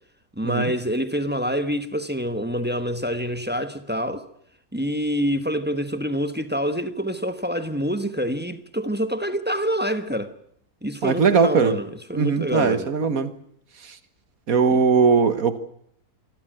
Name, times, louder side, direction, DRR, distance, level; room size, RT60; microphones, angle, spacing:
voice 1, 0.4-4.2 4.7-10.3 10.8-12.9, equal, 5° right, 1.2 m, -26 dB
voice 2, 11.0-11.8 12.1-13.3 14.5-15.6, right 5 dB, 65° right, 1.8 m, -19 dB
26.5 x 14.5 x 9.2 m
omnidirectional pair, 1.6 m